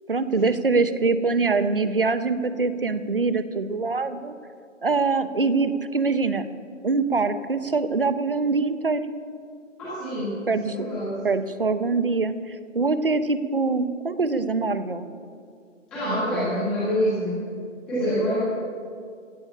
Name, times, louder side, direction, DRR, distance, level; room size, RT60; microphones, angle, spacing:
voice 1, 0.1-4.3 4.8-6.5 6.8-9.0 10.5-10.9 11.2-15.1 16.1-16.6, right 4 dB, 45° right, 12 dB, 0.9 m, -24 dB
voice 2, 9.8-11.2 15.9-17.4 17.9-18.4, equal, ahead, -12 dB, 1.6 m, -26 dB
16.0 x 7.0 x 9.8 m, 2.2 s
hypercardioid pair, 175°, 39 cm